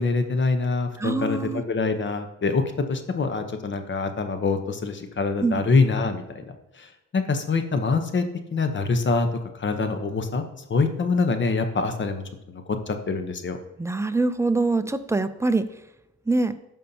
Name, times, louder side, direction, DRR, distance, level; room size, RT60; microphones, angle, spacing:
voice 1, 0.0-2.6 2.9-6.9 7.1-8.2 8.5-9.3 9.6-10.4 10.7-12.2 12.9-13.6, left 4 dB, 40° left, 7 dB, 1.0 m, -25 dB
voice 2, 1.0-1.6 5.4-5.6 13.8-15.7 16.3-16.5, right 3 dB, 10° right, 11 dB, 0.5 m, -24 dB
14.0 x 5.5 x 2.8 m, 0.88 s
cardioid pair, 90°, 30 cm